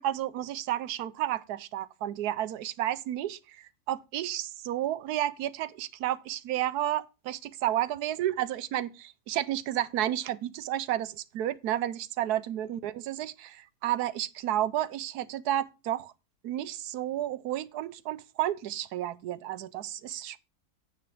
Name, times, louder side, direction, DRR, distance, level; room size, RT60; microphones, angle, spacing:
voice 1, 0.0-16.1 16.4-20.4, right 12 dB, 80° right, 1.2 m, -31 dB
9.5 x 8.6 x 3.5 m
omnidirectional pair, 1.7 m